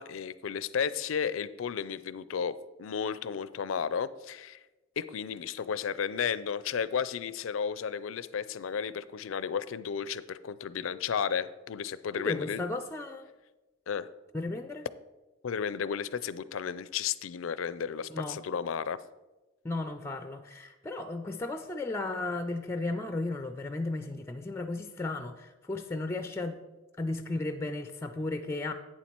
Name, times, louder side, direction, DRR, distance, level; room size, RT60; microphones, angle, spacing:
voice 1, 0.0-4.6 5.0-12.6 13.9-14.1 15.4-19.0, left 7 dB, 90° left, 16 dB, 0.4 m, -33 dB
voice 2, 12.1-13.3 14.3-14.9 18.1-18.4 19.6-26.6 27.0-28.7, left 2 dB, 15° left, 8 dB, 0.4 m, -34 dB
8.9 x 7.1 x 4.5 m, 1.1 s
head